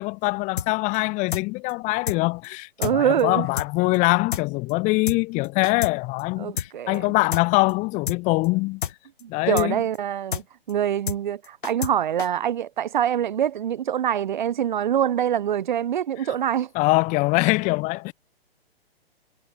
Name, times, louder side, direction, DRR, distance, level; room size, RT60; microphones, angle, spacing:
voice 1, 0.0-8.8 9.3-9.8 16.7-18.1, left 24 dB, 25° left, 2.0 m, -23 dB
sound 1, 0.6-0.7 0.9-1.0 1.3-1.4 1.7-1.8 2.1-2.2 2.4-2.5 2.8-2.9 3.2-3.3 3.6-3.7 3.9-4.0 4.3-4.4 4.7-4.8 5.1-5.2 5.4-5.9 6.2-6.3 6.6-6.7 6.9-7.0 7.3-7.4 7.7-7.8 8.1-8.2 8.4-8.5 8.8-8.9 9.2-9.3 9.6-9.7 9.9-10.0 10.3-10.4 10.7-10.8 11.1-11.2 11.4-11.9 12.2-12.3, left 8 dB, 55° left, 3.5 m, -29 dB
voice 2, 2.8-3.5 6.4-7.0 9.2-16.7, right 10 dB, 50° right, 3.2 m, -25 dB
figure-of-eight pair, 125°, 30 cm